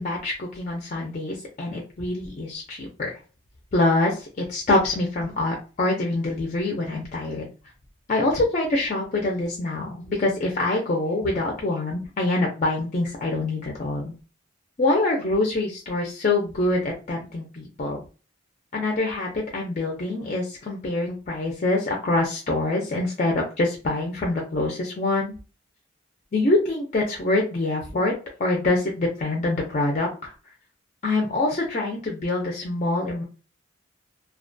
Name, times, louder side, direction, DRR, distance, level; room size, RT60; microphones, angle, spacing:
voice 1, 0.0-3.1 3.7-7.5 8.1-14.1 14.8-18.0 18.7-25.3 26.3-28.1 28.4-30.3 31.0-33.2, left 2 dB, 35° left, 0 dB, 0.4 m, -25 dB
2.3 x 2.2 x 2.5 m, 0.35 s
head